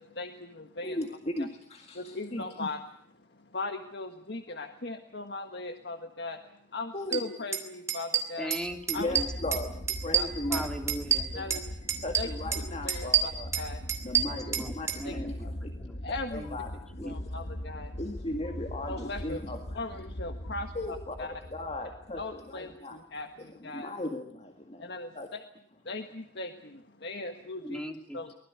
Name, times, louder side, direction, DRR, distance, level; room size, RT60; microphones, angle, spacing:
voice 1, 0.0-1.0 1.9-2.8 3.4-6.4 6.7-8.5 8.9-9.1 10.1-10.6 11.3-11.6 12.1-12.3 12.8-13.8 15.0-15.2 16.0-16.5 17.0-17.9 18.9-19.4 19.7-21.4 22.2-23.9 24.8-25.4 25.8-27.8 28.1-28.4, left 2 dB, 65° left, 6 dB, 1.5 m, -38 dB
voice 2, 0.8-2.5 6.9-7.2 9.0-13.5 14.0-15.6 16.3-16.7 17.0-17.2 18.0-19.9 20.7-23.0 23.4-24.9 25.1-25.3, left 1 dB, 35° left, 4 dB, 2.0 m, -37 dB
sound 1, 7.1-7.2 7.5-7.6 7.9-8.6 8.9-9.6 9.9-11.6 11.9-12.6 12.9-15.0, right 8 dB, 15° right, 2.5 m, -28 dB
voice 3, 8.4-9.3 10.5-11.3 14.2-15.3 15.6-16.0 16.3-16.6 17.0-17.2 27.6-28.4, equal, 5° left, 4 dB, 2.9 m, -39 dB
sound 2, 8.6-22.7, equal, 85° left, 2.1 m, -40 dB
24.0 x 20.5 x 8.2 m, 0.65 s
head